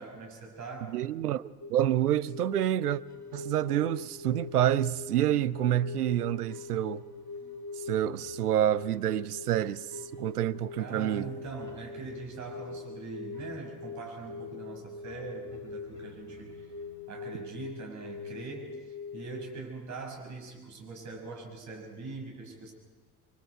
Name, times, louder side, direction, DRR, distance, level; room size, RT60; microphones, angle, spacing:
voice 1, 0.0-1.0 10.8-16.7 17.1-18.8 19.1-22.7, right 4 dB, 35° right, 6.3 m, -42 dB
voice 2, 0.9-3.0 3.3-7.0 7.9-9.9 10.2-11.3, right 12 dB, 75° right, 0.7 m, -28 dB
sound 1, 1.6-19.6, left 4 dB, 35° left, 4.1 m, -43 dB
sound 2, 3.0-18.5, left 1 dB, 85° left, 3.8 m, -58 dB
29.0 x 23.0 x 4.7 m
figure-of-eight pair, 65°, 46 cm